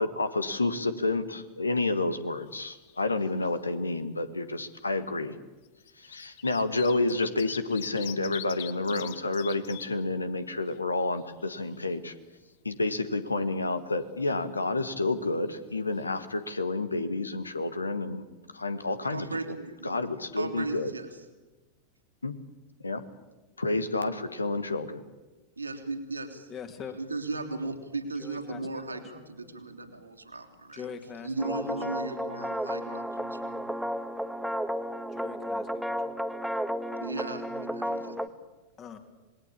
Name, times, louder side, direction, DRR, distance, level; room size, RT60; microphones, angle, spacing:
voice 1, 0.0-5.4 6.0-12.1 12.6-19.6 19.8-20.9 22.2-22.3 22.8-23.0 23.6-25.0, left 2 dB, 80° left, 12 dB, 1.7 m, -30 dB
sound 1, 2.4-3.2 3.4-3.5 4.6-4.8 5.7-9.9 10.3-10.4 10.7-11.8 15.6-15.7 16.0-16.1, left 13 dB, 55° left, 1.3 m, -44 dB
voice 2, 19.1-20.0 20.4-21.1 25.6-26.4 26.9-30.8 31.2-33.7 37.0-38.2, right 3 dB, 80° right, 5 dB, 2.9 m, -36 dB
voice 3, 26.5-27.0 28.2-29.5 30.7-31.7 35.1-36.1 38.8-39.0, left 6 dB, 30° left, 6 dB, 3.0 m, -44 dB
sound 2, 31.4-38.3, equal, ahead, 1.2 m, -33 dB
27.0 x 20.5 x 8.7 m, 1.2 s
figure-of-eight pair, 90°, 0 cm